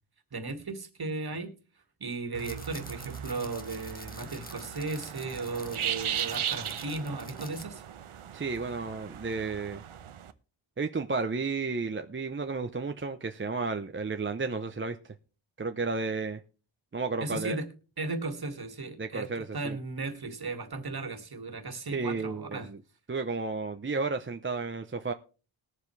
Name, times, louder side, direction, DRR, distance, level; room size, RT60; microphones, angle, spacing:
voice 1, 0.3-1.5 2.0-7.8 17.2-17.7 18.0-22.7, right 3 dB, 50° right, 2.0 m, -36 dB
sound 1, 2.3-10.3, right 9 dB, 80° right, 0.9 m, -38 dB
sound 2, 2.4-7.6, left 2 dB, 20° left, 1.3 m, -49 dB
voice 2, 8.3-9.8 10.8-15.1 15.6-16.4 16.9-17.6 19.0-19.8 21.9-22.8 23.1-25.1, right 4 dB, 25° right, 0.7 m, -32 dB
20.5 x 7.2 x 3.2 m
wide cardioid pair, 90°, 49 cm